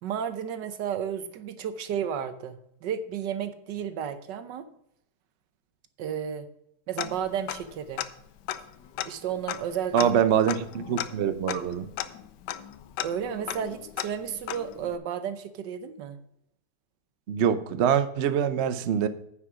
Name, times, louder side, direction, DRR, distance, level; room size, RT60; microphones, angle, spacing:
voice 1, 0.0-4.7 6.0-6.5 6.9-8.0 9.1-10.2 13.0-16.2, right 8 dB, 80° right, 12 dB, 1.5 m, -32 dB
Tick-tock, 7.0-7.7 8.0-8.1 8.5-15.0, left 11 dB, 80° left, 1.2 m, -36 dB
voice 2, 9.9-11.9 17.3-19.1, right 8 dB, 60° right, 12 dB, 0.7 m, -24 dB
9.6 x 5.9 x 6.0 m, 0.77 s
omnidirectional pair, 1.9 m